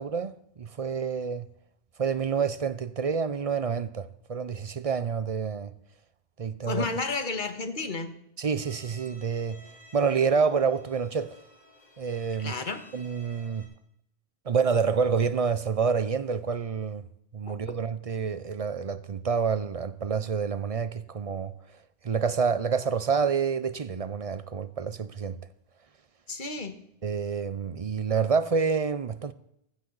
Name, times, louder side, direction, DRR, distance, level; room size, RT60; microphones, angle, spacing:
voice 1, 0.0-1.5 2.0-5.7 6.4-6.9 8.4-9.6 9.9-11.4 12.0-12.5 12.9-13.7 14.5-17.1 17.3-21.5 22.0-25.4 27.0-29.3, right 6 dB, 40° right, 0.6 m, -28 dB
voice 2, 6.6-8.1 12.4-12.9 17.5-17.6 26.3-26.8, left 3 dB, 50° left, 1.6 m, -32 dB
Bowed string instrument, 8.6-13.6, left 1 dB, 30° left, 3.2 m, -54 dB
15.5 x 14.5 x 4.0 m
omnidirectional pair, 1.1 m